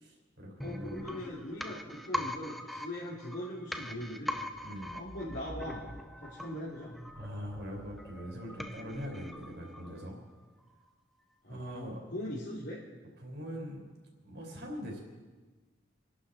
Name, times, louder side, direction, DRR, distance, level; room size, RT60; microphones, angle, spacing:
voice 1, 0.0-1.0 4.6-5.0 7.2-10.2 11.5-12.0 13.2-13.8 14.2-15.0, equal, 65° right, 0 dB, 4.3 m, -42 dB
voice 2, 0.6-4.3 4.9-6.9 11.4-12.8, left 1 dB, 70° left, -7 dB, 3.0 m, -41 dB
sound 1, 0.6-10.3 10.6-10.7, equal, ahead, 0.6 m, -42 dB
27.0 x 11.5 x 4.2 m, 1.3 s
head